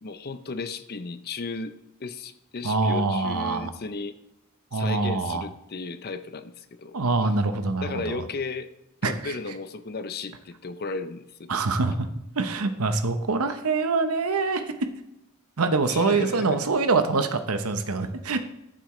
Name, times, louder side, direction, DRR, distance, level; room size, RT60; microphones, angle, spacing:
voice 1, 0.0-4.2 4.7-7.0 7.8-8.7 9.0-11.5 15.9-16.6, left 4 dB, 45° left, 12 dB, 0.6 m, -35 dB
voice 2, 2.6-3.7 4.7-5.4 6.9-8.2 9.0-9.3 11.5-12.1 12.4-14.7 15.6-18.4, right 3 dB, 80° right, 9 dB, 0.9 m, -25 dB
14.0 x 7.5 x 3.2 m, 0.87 s
head